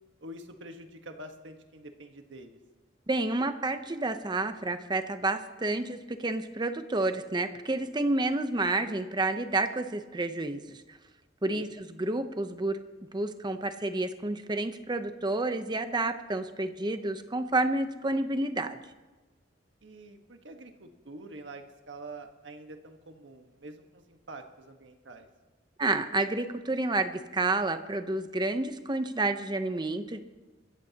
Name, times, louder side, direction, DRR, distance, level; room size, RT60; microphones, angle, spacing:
voice 1, 0.2-2.6 11.5-11.7 19.8-25.3, right 2 dB, 85° right, 5 dB, 1.4 m, -46 dB
voice 2, 3.1-10.8 11.4-12.8 13.1-18.8 25.8-30.2, right 2 dB, 25° right, 9 dB, 0.7 m, -30 dB
23.0 x 15.0 x 2.9 m, 1.2 s
head